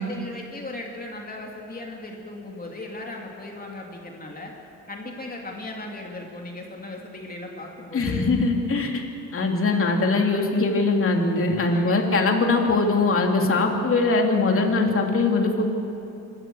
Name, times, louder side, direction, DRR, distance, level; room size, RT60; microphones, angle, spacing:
voice 1, 0.0-4.5 4.9-8.3 11.6-12.0, left 2 dB, 30° left, 0 dB, 3.1 m, -37 dB
voice 2, 7.9-9.0 9.3-15.8, left 3 dB, 45° left, 2 dB, 3.0 m, -21 dB
26.0 x 13.0 x 8.0 m, 2.7 s
cardioid pair, 90°, 30 cm